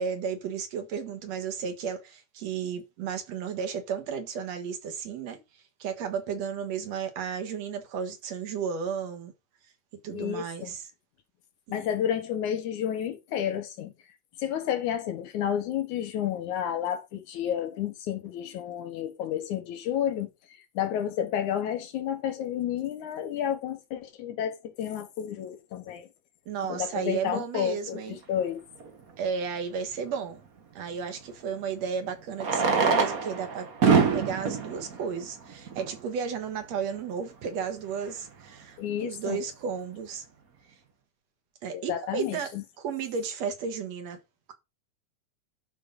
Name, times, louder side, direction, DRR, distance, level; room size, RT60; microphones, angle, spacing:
voice 1, 0.0-5.4 5.8-9.3 10.0-10.9 26.5-28.2 29.2-30.4 30.8-40.3 41.6-44.2, right 6 dB, 65° right, 2.6 m, -33 dB
voice 2, 10.1-10.8 11.7-13.9 14.4-20.3 20.7-26.1 26.7-28.6 38.8-39.4 41.7-42.6, left 9 dB, 85° left, 2.8 m, -31 dB
Fireworks, 28.8-28.9 31.2-31.3 32.3-36.1 36.8-36.9 37.1-37.2 37.4-37.5 38.1-38.3, right 5 dB, 45° right, 1.1 m, -25 dB
11.5 x 4.2 x 5.3 m
omnidirectional pair, 3.3 m